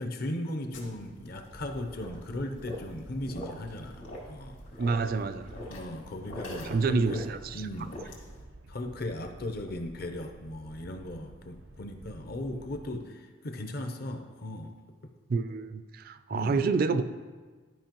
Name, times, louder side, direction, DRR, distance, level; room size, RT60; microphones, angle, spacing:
voice 1, 0.0-4.6 5.6-8.2 8.7-14.7 16.3-16.6, left 1 dB, 50° left, 6 dB, 0.7 m, -37 dB
sound 1, 0.7-8.4, left 1 dB, 70° left, 2.0 m, -44 dB
sound 2, 1.5-12.9, right 1 dB, 85° right, 0.7 m, -51 dB
voice 2, 4.8-5.5 6.6-7.6 15.3-17.0, right 4 dB, 45° right, 12 dB, 0.3 m, -28 dB
12.5 x 5.2 x 3.0 m, 1.4 s
head